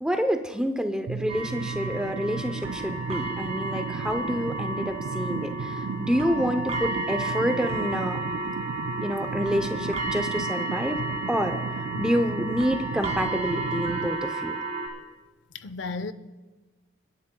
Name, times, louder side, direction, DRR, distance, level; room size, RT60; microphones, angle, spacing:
voice 1, 0.0-8.3 9.0-11.0 11.3-11.6 12.0-14.6, equal, 5° right, 0.6 m, -28 dB
sound 1, 1.1-14.1, right 5 dB, 55° right, 0.4 m, -35 dB
sound 2, 1.3-14.9, right 2 dB, 35° right, 1.9 m, -33 dB
voice 2, 15.5-16.1, left 3 dB, 65° left, 0.6 m, -34 dB
29.5 x 10.0 x 2.2 m
head